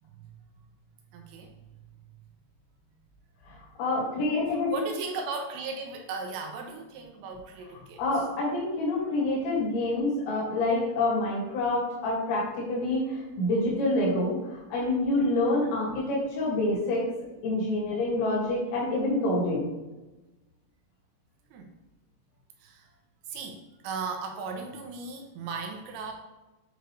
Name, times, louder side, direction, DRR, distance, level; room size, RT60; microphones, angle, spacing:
voice 1, 1.1-1.5 3.6-3.7 4.7-8.3 15.7-15.8 21.5-21.7 22.6-22.9 23.3-26.1, right 4 dB, 85° right, 3 dB, 2.8 m, -37 dB
voice 2, 3.5-4.8 8.0-17.1 17.4-19.7, left 2 dB, 70° left, -6 dB, 4.4 m, -27 dB
9.1 x 4.8 x 3.3 m, 1.1 s
omnidirectional pair, 5.4 m